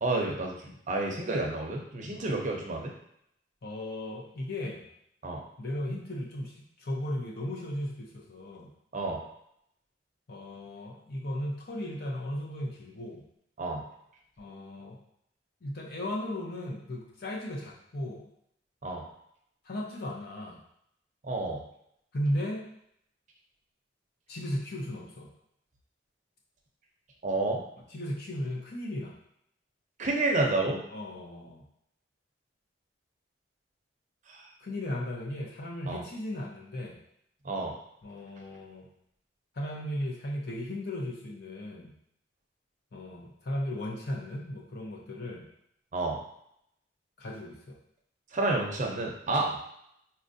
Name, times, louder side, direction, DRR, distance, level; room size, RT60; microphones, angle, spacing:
voice 1, 0.0-2.9 5.2-5.4 8.9-9.2 13.6-13.8 18.8-19.0 21.2-21.6 27.2-27.6 30.0-30.8 34.3-34.4 35.9-36.0 37.4-37.7 45.9-46.2 48.3-49.5, right 2 dB, 45° right, 1 dB, 0.6 m, -30 dB
voice 2, 3.6-4.9 5.6-6.5 6.8-8.7 10.3-13.2 14.4-15.0 15.6-18.3 19.6-20.6 22.1-22.7 24.3-25.3 27.9-29.1 30.9-31.6 34.6-37.0 38.0-38.9 39.5-41.9 42.9-45.4 47.2-47.8 49.4-49.5, left 1 dB, 60° left, -1 dB, 0.7 m, -36 dB
4.2 x 2.4 x 2.6 m, 0.74 s
head